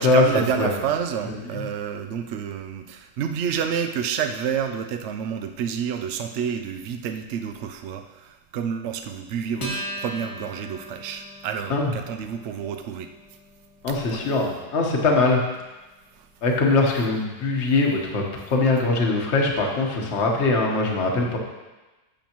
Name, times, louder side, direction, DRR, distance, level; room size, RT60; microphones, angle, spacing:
voice 1, 0.0-13.1 13.9-14.3 16.1-16.3, right 7 dB, 70° right, 6 dB, 0.6 m, -29 dB
Acoustic guitar, 9.6-16.4, equal, 70° left, 2.5 m, -39 dB
voice 2, 13.8-15.4 16.4-21.4, left 3 dB, 45° left, 0 dB, 1.4 m, -21 dB
12.0 x 7.2 x 3.0 m, 1.1 s
omnidirectional pair, 1.8 m